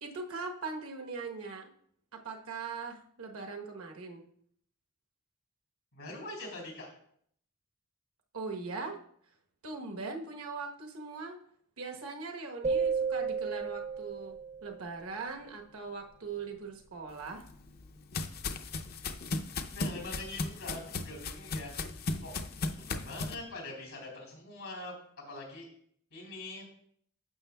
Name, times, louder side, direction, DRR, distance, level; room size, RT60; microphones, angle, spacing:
voice 1, 0.0-1.7 2.1-4.2 8.3-9.0 9.6-11.4 11.8-17.5, right 4 dB, 80° right, 2 dB, 1.1 m, -40 dB
voice 2, 5.9-6.9 19.5-21.7 22.2-22.4 22.8-25.7 26.1-26.7, left 2 dB, 85° left, 0 dB, 3.4 m, -43 dB
sound 1, 12.6-14.9, right 5 dB, 35° right, 0.5 m, -32 dB
sound 2, 17.2-23.4, left 3 dB, 45° left, 0.5 m, -36 dB
11.5 x 7.0 x 2.2 m, 0.66 s
head